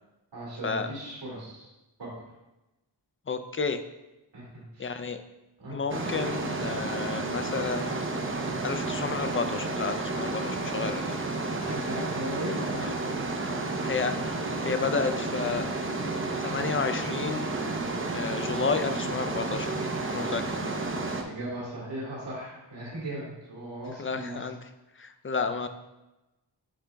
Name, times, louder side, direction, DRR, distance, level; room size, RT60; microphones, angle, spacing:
voice 1, 0.3-1.7 2.0-2.1 4.3-4.9 5.6-5.8 11.5-13.0 21.2-24.4 25.4-25.5, right 1 dB, 85° right, -6 dB, 1.9 m, -37 dB
voice 2, 3.3-3.8 4.8-5.2 5.7-7.9 8.6-11.2 12.8-12.9 13.8-14.1 14.6-15.7 16.4-17.5 18.1-20.8 24.0-24.6 25.0-25.7, left 5 dB, 30° left, 9 dB, 0.4 m, -31 dB
sound 1, 5.9-21.2, right 3 dB, 30° right, 0.7 m, -31 dB
9.0 x 4.9 x 2.3 m, 1.0 s
wide cardioid pair, 80°, 43 cm